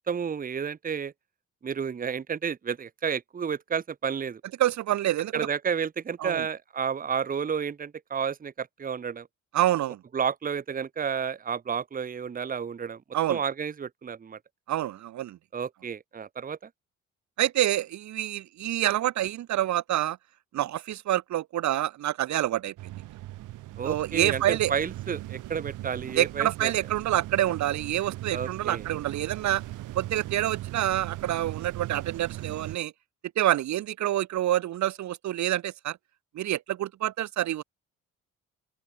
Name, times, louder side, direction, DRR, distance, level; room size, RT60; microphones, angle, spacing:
voice 1, 0.1-1.1 1.6-4.4 5.3-9.3 10.1-13.0 13.3-14.4 15.5-16.7 23.8-26.7 28.3-28.8, right 7 dB, 30° right, 0.9 m, -31 dB
voice 2, 4.6-5.3 6.2-6.5 9.5-10.0 13.1-13.4 14.7-15.4 17.4-20.2 20.5-22.7 23.8-24.7 26.2-29.6 29.9-32.9 33.4-36.0 36.3-37.6, right 13 dB, 65° right, 0.9 m, -27 dB
sound 1, 22.8-32.8, right 16 dB, 90° right, 3.8 m, -38 dB
open air
cardioid pair, 90°, 30 cm